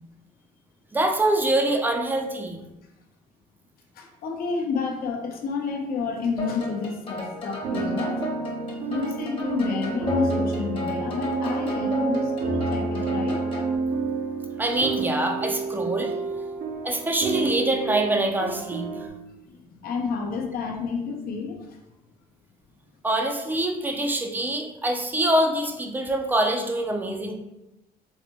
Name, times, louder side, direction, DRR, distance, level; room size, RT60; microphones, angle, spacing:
voice 1, 0.9-2.6 14.6-16.1 16.8-18.9 23.0-27.3, right 1 dB, 10° right, 3 dB, 0.4 m, -24 dB
voice 2, 3.9-8.2 8.9-13.4 19.4-21.6, left 5 dB, 60° left, 1 dB, 0.7 m, -30 dB
sound 1, 6.4-13.8, left 1 dB, 30° left, 1.0 m, -33 dB
sound 2, 7.6-19.1, right 3 dB, 55° right, 0.6 m, -29 dB
4.1 x 2.2 x 2.9 m, 0.95 s
cardioid pair, 110°, 17 cm